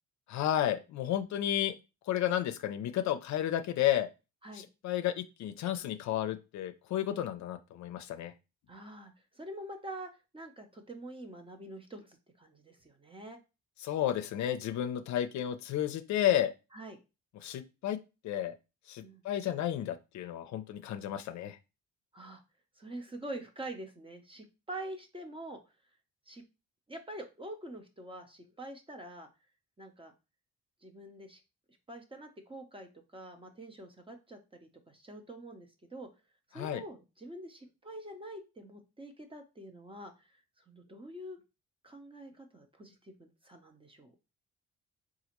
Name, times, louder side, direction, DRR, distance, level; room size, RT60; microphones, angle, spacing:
voice 1, 0.3-1.7 2.1-4.1 4.5-8.3 13.8-16.5 17.4-18.0 18.2-18.5 18.9-21.6 36.5-36.8, left 11 dB, 65° left, 9 dB, 0.5 m, -32 dB
voice 2, 8.7-13.4 16.7-17.0 19.0-19.2 22.1-22.4 22.8-25.6 26.3-26.4 26.9-29.3 29.8-30.1 30.8-31.4 31.9-36.1 36.5-40.1 40.7-41.4 41.8-44.1, right 1 dB, 20° right, 4 dB, 0.6 m, -46 dB
4.0 x 2.4 x 2.9 m, 0.29 s
cardioid pair, 90°, 30 cm